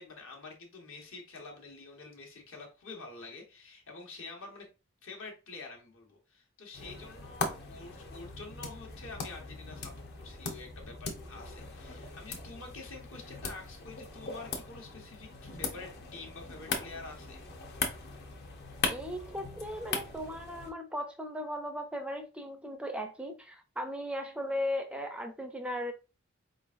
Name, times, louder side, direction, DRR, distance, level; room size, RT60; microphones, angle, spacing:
voice 1, 0.0-4.7 5.0-17.4, left 3 dB, 70° left, 1.2 m, -47 dB
sound 1, 6.7-20.7, left 4 dB, 55° left, 0.8 m, -40 dB
voice 2, 18.9-25.9, equal, 5° right, 0.4 m, -37 dB
4.3 x 3.8 x 2.5 m
head